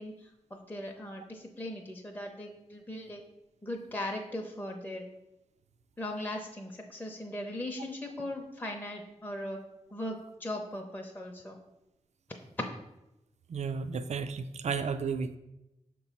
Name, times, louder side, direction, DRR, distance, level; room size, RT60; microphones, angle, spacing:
voice 1, 0.0-3.2 3.6-5.0 6.0-9.6 9.9-11.6 12.6-12.7, left 1 dB, 15° left, 1 dB, 0.6 m, -38 dB
voice 2, 13.5-15.4, right 5 dB, 65° right, 10 dB, 0.4 m, -33 dB
6.4 x 3.0 x 5.4 m, 0.91 s
wide cardioid pair, 105°, 13 cm